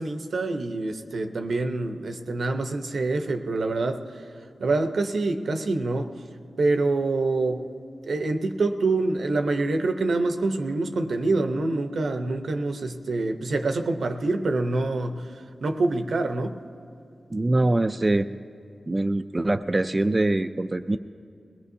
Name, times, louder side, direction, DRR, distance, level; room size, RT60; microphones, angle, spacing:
voice 1, 0.0-4.3 4.6-6.1 6.6-7.6 8.0-16.6, right 2 dB, 80° right, 5 dB, 0.7 m, -26 dB
voice 2, 17.3-18.3 18.9-21.0, right 2 dB, 30° right, 8 dB, 0.3 m, -23 dB
21.5 x 18.0 x 2.7 m, 2.5 s
wide cardioid pair, 80°, 0 cm